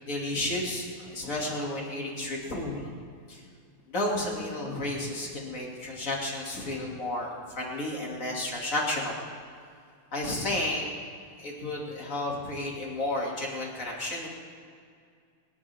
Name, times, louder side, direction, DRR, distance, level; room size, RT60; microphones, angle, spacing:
voice 1, 0.1-2.8 3.3-3.4 3.9-7.3 7.5-9.1 10.1-10.9 11.4-14.3, left 1 dB, 25° left, -2 dB, 2.3 m, -32 dB
29.5 x 10.5 x 3.6 m, 2.3 s
omnidirectional pair, 4.2 m